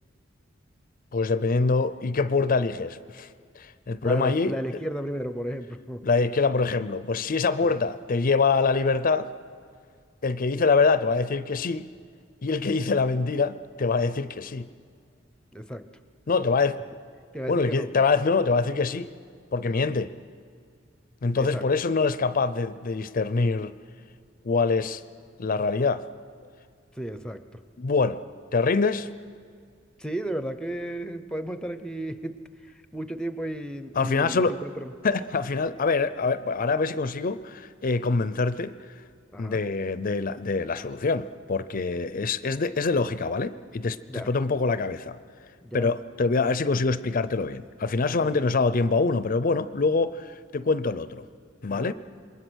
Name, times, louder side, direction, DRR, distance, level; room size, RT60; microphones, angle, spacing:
voice 1, 1.1-3.3 3.6-4.8 6.0-9.3 10.2-11.9 12.4-14.7 16.3-16.8 17.5-19.1 19.5-20.1 21.2-23.7 24.4-25.0 25.4-26.0 27.8-28.2 28.5-29.1 33.9-34.6 35.0-38.7 39.4-45.2 45.7-51.2 51.6-51.9, left 4 dB, 45° left, 14 dB, 0.5 m, -25 dB
voice 2, 4.0-6.1 7.6-7.7 15.5-15.9 17.3-17.9 21.4-21.7 27.0-27.4 30.0-32.4 32.9-34.9 39.3-39.6 44.1-44.3 45.6-45.9 48.2-48.5 51.7-51.9, right 1 dB, 5° left, 11 dB, 0.7 m, -33 dB
27.5 x 21.5 x 6.3 m, 2.1 s
head